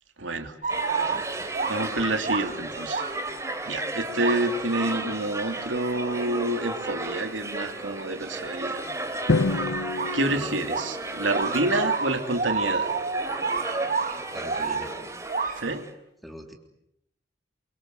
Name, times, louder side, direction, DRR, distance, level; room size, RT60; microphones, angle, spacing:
voice 1, 0.2-0.5 0.8-1.4 1.7-3.0 3.7-8.8 9.4-12.9 15.6-15.8, right 2 dB, 85° right, 6 dB, 2.9 m, -28 dB
sound 1, 0.6-3.4 4.2-4.6 10.0-10.4 10.7-15.8, right 5 dB, 40° right, 1.4 m, -30 dB
sound 2, 0.7-15.9, right 2 dB, 15° right, 3.1 m, -34 dB
voice 2, 1.1-1.5 10.3-10.5 14.3-14.9 16.2-16.5, equal, ahead, 2 dB, 3.4 m, -42 dB
Drum, 9.3-11.4, left 2 dB, 90° left, 1.1 m, -27 dB
28.0 x 24.0 x 8.2 m, 0.79 s
head